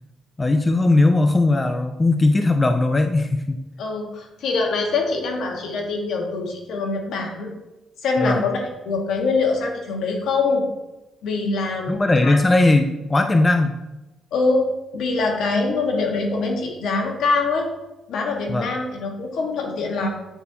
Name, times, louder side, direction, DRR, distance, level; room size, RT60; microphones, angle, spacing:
voice 1, 0.4-3.6 8.2-8.4 11.9-13.8 18.5-18.7, left 2 dB, 20° left, 7 dB, 0.4 m, -18 dB
voice 2, 3.8-7.5 8.0-10.6 11.2-12.4 14.3-14.7 14.9-17.7 18.1-20.1, left 3 dB, 75° left, 1 dB, 1.3 m, -24 dB
8.9 x 4.2 x 2.7 m, 1.0 s
cardioid pair, 90°, 0 cm